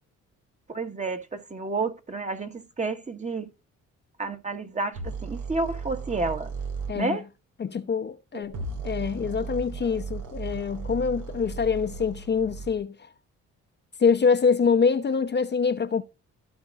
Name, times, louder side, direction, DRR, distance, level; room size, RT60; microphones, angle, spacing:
voice 1, 0.7-3.5 4.2-6.5 6.9-7.3 8.3-8.6, right 3 dB, 25° right, 1.4 m, -30 dB
sound 1, 4.9-7.0 8.4-12.8, right 4 dB, 85° right, 2.2 m, -35 dB
voice 2, 7.6-8.6 8.8-13.1 14.0-16.0, left 5 dB, 35° left, 0.8 m, -25 dB
15.5 x 5.2 x 2.5 m
cardioid pair, 90°, 30 cm